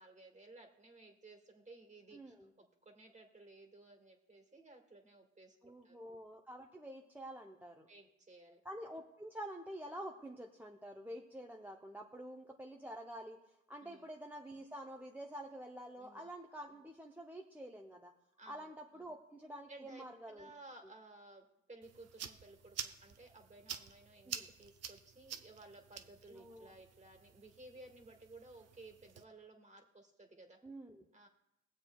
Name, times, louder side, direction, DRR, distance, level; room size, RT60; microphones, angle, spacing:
voice 1, 0.0-6.0 7.9-8.6 13.8-14.1 16.0-16.3 18.4-19.1 19.7-24.3 24.6-30.6 31.1-31.3, right 2 dB, 25° right, 3 dB, 1.7 m, -57 dB
voice 2, 2.1-2.5 5.6-7.9 8.6-13.4 13.7-18.1 18.5-20.5 24.3-24.5 26.3-26.7 30.6-31.1, right 1 dB, 5° right, 0 dB, 0.7 m, -48 dB
sound 1, 21.8-29.2, right 8 dB, 55° right, 0.7 m, -49 dB
22.0 x 7.4 x 2.3 m, 0.85 s
cardioid pair, 90°, 30 cm